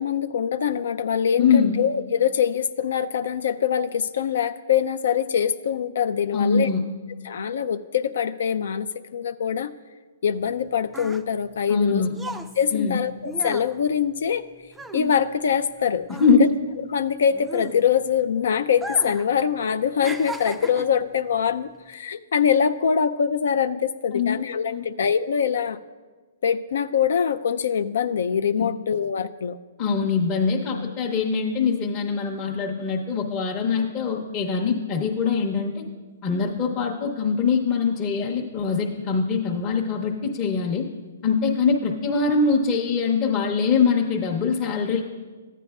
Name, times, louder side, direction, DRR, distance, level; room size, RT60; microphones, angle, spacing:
voice 1, 0.0-6.7 7.2-9.7 10.2-12.0 12.6-14.4 14.9-16.5 16.9-25.8 26.4-29.6, left 7 dB, 75° left, 10 dB, 0.3 m, -24 dB
voice 2, 1.4-1.7 6.3-6.8 11.7-12.2 12.7-13.0 16.1-16.5 24.1-24.4 24.7-24.8 28.6-28.7 29.8-35.8 36.2-40.9 41.2-45.0, left 5 dB, 25° left, -2 dB, 0.7 m, -23 dB
sound 1, 10.4-15.8 16.0-18.2 18.7-19.3 19.6-21.0 21.7-21.9, right 2 dB, 5° right, 0.3 m, -36 dB
14.0 x 9.1 x 2.3 m, 1.3 s
hypercardioid pair, 150°, 0 cm